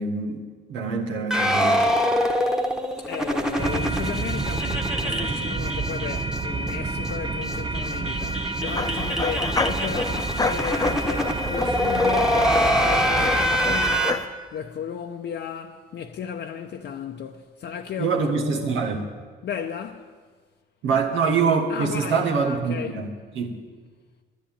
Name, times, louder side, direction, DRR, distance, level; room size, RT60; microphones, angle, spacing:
voice 1, 0.0-1.8 18.0-19.0 20.8-23.1 23.4-23.6, right 5 dB, 90° right, 1.7 m, -24 dB
sound 1, 1.3-6.4 6.7-6.8 7.0-7.1 7.4-14.1, equal, 5° right, 1.3 m, -25 dB
voice 2, 3.0-18.9 19.4-20.1 21.7-23.0, left 7 dB, 60° left, 0.7 m, -34 dB
sound 2, 3.6-14.0, right 3 dB, 25° right, 0.7 m, -29 dB
sound 3, 8.7-14.3, left 3 dB, 20° left, 0.8 m, -29 dB
10.5 x 9.9 x 8.8 m
cardioid pair, 90°, 20 cm